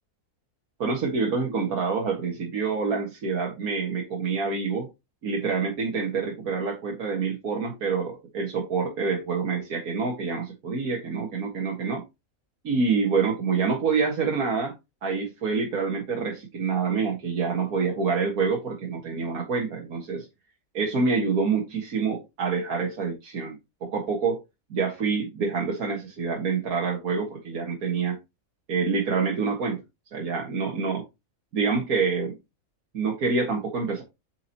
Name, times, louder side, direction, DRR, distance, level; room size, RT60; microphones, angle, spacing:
voice 1, 0.8-4.9 5.2-12.0 12.6-14.7 15.0-20.3 20.7-24.4 24.7-28.2 28.7-29.8 30.1-31.0 31.5-32.4 32.9-34.0, right 5 dB, 90° right, 2.0 m, -27 dB
7.6 x 4.7 x 2.9 m
omnidirectional pair, 1.5 m